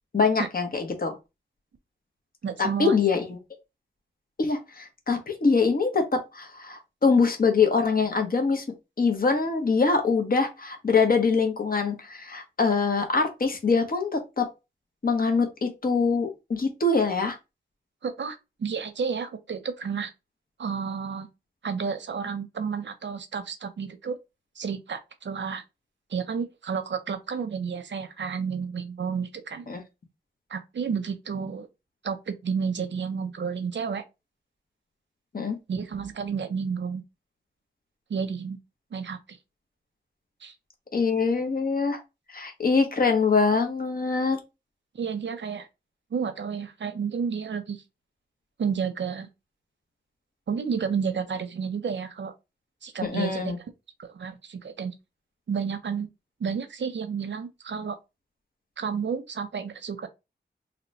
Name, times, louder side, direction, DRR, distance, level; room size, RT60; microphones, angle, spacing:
voice 1, 0.1-1.2 2.6-3.4 4.4-8.6 9.0-14.5 15.0-17.4 29.7-29.8 35.3-35.6 40.9-42.0 42.3-44.4 53.0-53.6, left 4 dB, 50° left, 0.9 m, -24 dB
voice 2, 2.4-3.0 18.0-20.1 20.6-21.3 21.6-24.2 24.6-25.6 26.1-29.7 30.5-31.7 32.0-34.0 35.7-37.0 38.1-38.6 38.9-39.2 40.4-40.5 44.9-45.7 46.1-47.8 48.6-49.3 50.5-52.3 52.8-53.5 54.0-54.9 55.5-56.1 56.4-58.0 58.8-60.1, right 6 dB, 75° right, 0.6 m, -31 dB
2.9 x 2.1 x 3.9 m
wide cardioid pair, 55°, 19 cm